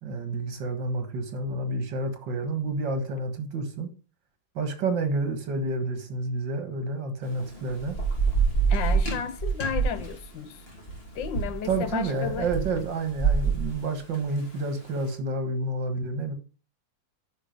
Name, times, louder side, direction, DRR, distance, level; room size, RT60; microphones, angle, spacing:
voice 1, 0.0-3.9 4.6-8.0 11.6-16.3, right 2 dB, 75° right, 2.3 m, -29 dB
Thunder / Rain, 7.2-14.9, right 5 dB, 30° left, 3.0 m, -27 dB
voice 2, 8.7-10.6 11.1-12.5, left 7 dB, 75° left, 1.5 m, -33 dB
9.7 x 5.5 x 5.3 m
omnidirectional pair, 2.0 m